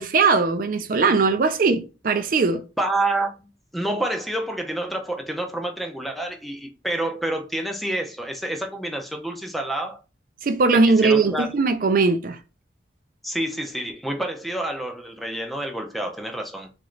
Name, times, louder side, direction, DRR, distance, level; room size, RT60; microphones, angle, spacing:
voice 1, 0.0-2.6 10.4-12.4, right 4 dB, 50° right, 0.4 m, -20 dB
voice 2, 2.8-10.0 10.8-11.5 13.2-16.7, right 1 dB, ahead, 0.5 m, -28 dB
3.9 x 2.5 x 3.2 m
head